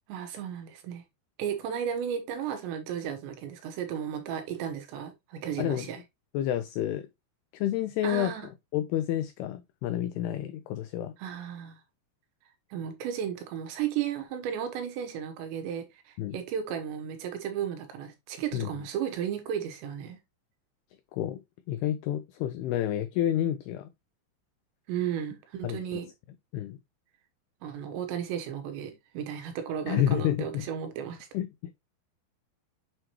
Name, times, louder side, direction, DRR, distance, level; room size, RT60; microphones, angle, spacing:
voice 1, 0.1-1.0 1.4-6.0 8.0-8.5 11.2-11.8 12.7-20.2 24.9-26.1 27.6-31.3, right 9 dB, 80° right, 3.5 m, -34 dB
voice 2, 6.3-7.1 7.5-8.3 8.7-11.1 16.2-16.4 18.5-18.7 21.1-21.4 21.7-23.9 25.6-26.0 26.5-26.8 29.9-30.7 31.3-31.5, left 11 dB, 85° left, 2.2 m, -29 dB
7.6 x 4.6 x 2.9 m
omnidirectional pair, 5.0 m